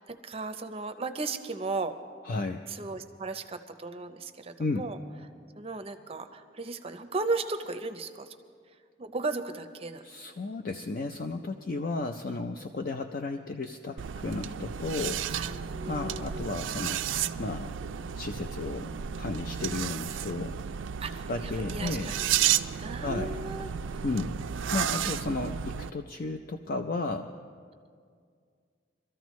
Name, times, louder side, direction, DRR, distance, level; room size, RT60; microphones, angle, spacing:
voice 1, 0.0-1.9 2.7-5.0 5.6-8.3 9.0-10.0 12.5-12.6 15.3-16.4 21.0-22.3 22.6-24.0, right 3 dB, 30° right, 8 dB, 0.6 m, -36 dB
voice 2, 2.3-2.6 4.6-4.9 10.0-15.3 15.9-17.0 17.4-17.7 18.1-20.6 21.3-22.1 23.0-23.4 24.0-24.4 24.7-27.3, left 3 dB, 50° left, 6 dB, 0.5 m, -33 dB
sound 1, 14.0-25.9, right 9 dB, 90° right, 0.4 m, -32 dB
24.0 x 13.5 x 3.1 m, 2.1 s
head